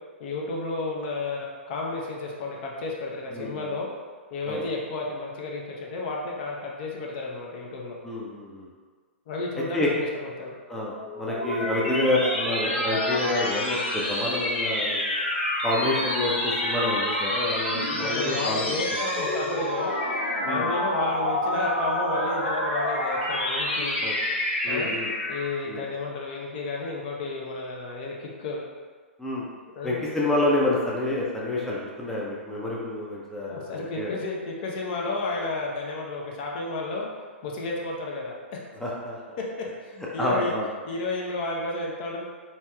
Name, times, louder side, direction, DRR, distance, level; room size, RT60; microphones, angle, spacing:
voice 1, 0.2-3.9 4.3-8.0 9.3-10.5 17.7-19.9 20.5-24.0 24.7-24.9 25.3-28.6 29.8-30.0 33.5-37.1 37.4-38.6 39.8-40.5 40.9-42.2, left 3 dB, 45° left, -2 dB, 0.7 m, -32 dB
voice 2, 3.3-3.7 4.5-4.6 8.0-8.7 9.7-9.9 10.7-15.0 15.6-19.0 20.4-20.7 24.0-24.1 24.6-25.1 25.7-25.9 29.2-29.5 29.8-34.1 38.8-39.2 40.0-40.7, left 1 dB, 5° left, -5 dB, 0.5 m, -28 dB
sound 1, 10.9-25.6, left 1 dB, 65° left, 1.1 m, -28 dB
4.2 x 3.0 x 2.3 m, 1.5 s
figure-of-eight pair, 110°, 7 cm